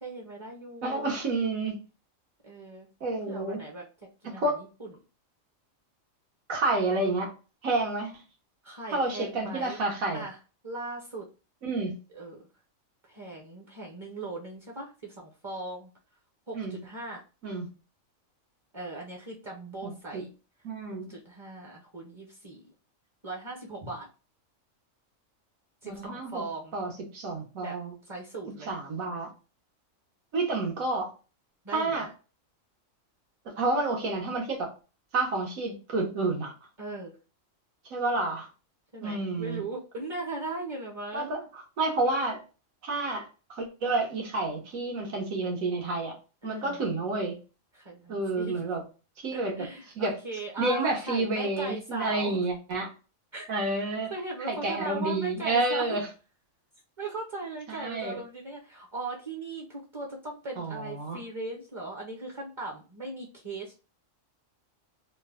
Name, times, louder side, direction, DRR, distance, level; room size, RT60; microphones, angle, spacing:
voice 1, 0.0-1.1 2.4-2.9 3.3-3.8 4.2-4.9 8.6-9.8 10.1-10.4 10.6-11.3 12.1-12.4 13.1-15.9 16.5-17.2 18.7-20.3 21.1-22.6 23.2-24.1 25.8-26.8 27.6-27.8 28.0-28.7 31.6-32.1 36.8-37.2 38.9-41.3 46.4-46.8 47.7-48.6 49.3-52.4 53.3-53.5 54.1-56.0 57.0-63.9, right 2 dB, 30° right, -2 dB, 0.5 m, -38 dB
voice 2, 0.8-1.8 3.0-3.6 4.2-4.6 6.5-7.3 7.6-8.1 8.9-10.2 11.6-11.9 16.5-16.8 17.4-17.7 19.8-20.2 20.6-21.0 25.8-26.4 26.7-27.9 28.7-29.3 30.3-31.1 31.7-32.1 33.4-34.7 35.1-36.5 37.9-38.5 39.0-39.6 41.1-42.4 42.8-46.1 46.4-47.3 48.1-48.8 49.2-49.5 50.0-50.1 50.6-52.9 53.5-54.1 54.5-56.1 57.7-58.2 60.6-61.2, right 2 dB, 90° right, 1 dB, 1.5 m, -29 dB
3.2 x 2.2 x 3.5 m, 0.33 s
omnidirectional pair, 1.4 m